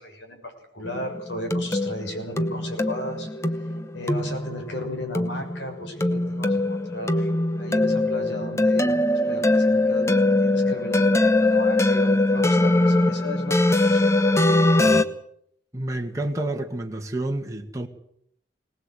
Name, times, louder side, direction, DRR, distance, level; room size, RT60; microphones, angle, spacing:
voice 1, 0.0-3.3 3.9-7.3 7.5-14.1 14.7-15.0, left 1 dB, 80° left, 6.7 m, -35 dB
sound 1, 0.8-15.0, left 2 dB, 15° left, 1.0 m, -22 dB
voice 2, 15.7-17.9, right 1 dB, 15° right, 2.0 m, -29 dB
22.5 x 18.5 x 8.1 m
head